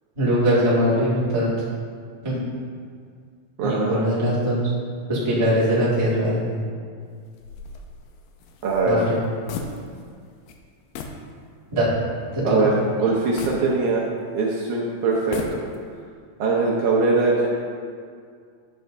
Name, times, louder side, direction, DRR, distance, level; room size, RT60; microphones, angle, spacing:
voice 1, 0.2-1.5 2.2-2.4 3.6-4.7 5.1-6.6 8.8-9.0 11.7-11.9 12.3-12.4, equal, 45° right, -8 dB, 0.3 m, -21 dB
voice 2, 3.6-4.0 8.6-9.1 12.4-14.1 14.3-15.6 16.4-17.5, right 3 dB, 75° right, -4 dB, 1.8 m, -21 dB
sound 1, 7.4-10.2 10.5-10.6 10.9-11.3 11.7-11.8 13.4-14.4 15.1-16.0, left 4 dB, 80° left, 2.3 m, -36 dB
10.0 x 7.6 x 2.6 m, 2.1 s
omnidirectional pair, 4.3 m